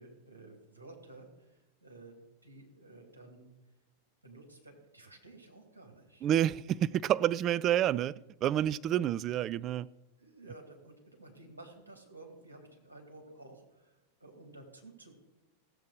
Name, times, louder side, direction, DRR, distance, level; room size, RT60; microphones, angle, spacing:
voice 1, 0.0-2.2 2.4-3.5 4.2-6.5 7.2-7.4 8.9-9.0 10.2-15.2, right 2 dB, 80° right, 2.4 m, -53 dB
voice 2, 6.2-8.1 8.4-9.9, right 11 dB, 30° right, 0.3 m, -28 dB
16.0 x 7.5 x 4.8 m
figure-of-eight pair, 90°, 0 cm